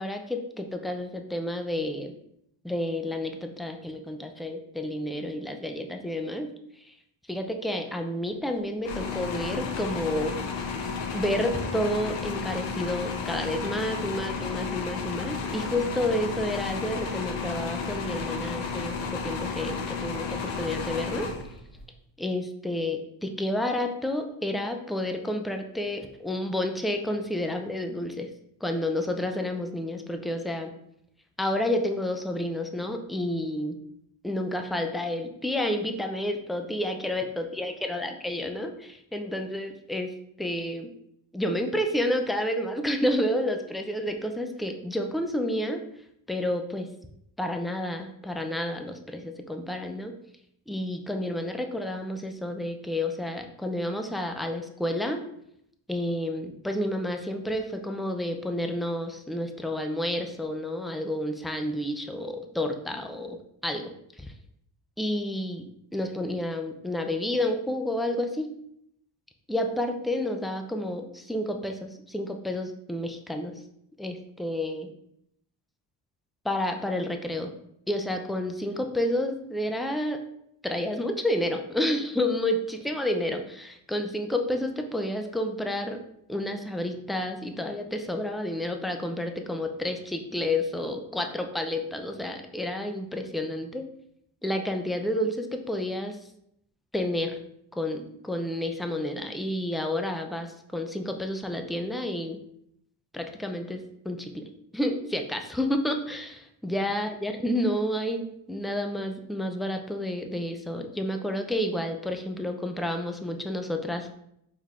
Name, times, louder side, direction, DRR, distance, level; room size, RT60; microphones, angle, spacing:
voice 1, 0.0-2.1 2.6-6.5 6.8-6.9 7.3-10.3 11.1-21.3 22.2-28.3 28.6-30.7 31.4-33.8 34.2-40.1 40.4-40.9 41.3-45.8 46.3-46.9 47.4-50.1 50.7-55.2 55.9-63.4 63.6-63.8 64.2-64.3 65.0-65.6 65.9-68.5 69.5-73.5 74.0-74.9 76.4-77.5 77.9-80.2 80.6-86.0 86.3-93.9 94.4-96.2 96.9-97.4 97.7-102.4 103.1-104.5 104.7-114.1, left 1 dB, ahead, 4 dB, 0.3 m, -30 dB
sound 1, 8.8-21.8, left 5 dB, 80° left, 0.8 m, -32 dB
4.4 x 3.6 x 2.4 m, 0.74 s
cardioid pair, 80°, 43 cm